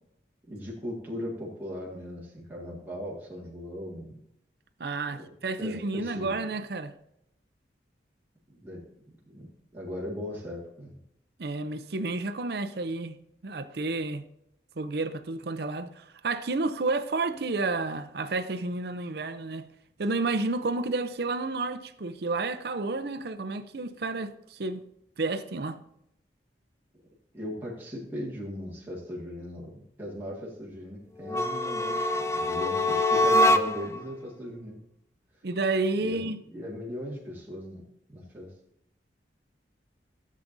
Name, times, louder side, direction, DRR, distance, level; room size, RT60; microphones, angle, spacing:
voice 1, 0.5-4.2 5.2-5.3 5.6-6.4 8.5-8.9 9.3-11.0 27.3-34.8 36.0-37.8 38.1-38.5, equal, 10° right, 1.9 m, -38 dB
voice 2, 4.8-6.9 11.4-13.2 13.4-14.2 14.8-19.7 20.0-24.8 25.2-25.8 35.4-36.4, right 3 dB, 60° right, 0.6 m, -31 dB
sound 1, 31.2-34.0, left 1 dB, 15° left, 0.3 m, -24 dB
14.0 x 7.4 x 2.7 m
head